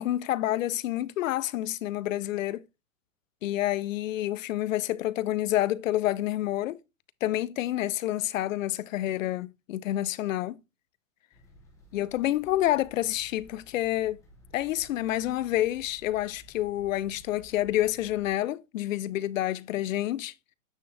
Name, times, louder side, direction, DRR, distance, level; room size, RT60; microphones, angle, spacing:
voice 1, 0.0-2.6 3.4-6.8 7.2-10.6 11.9-14.2 14.5-20.3, left 14 dB, 75° left, 0.6 m, -28 dB
sound 1, 11.3-18.3, equal, 5° left, 0.9 m, -55 dB
9.0 x 3.6 x 3.2 m
supercardioid pair, 170°, 40 cm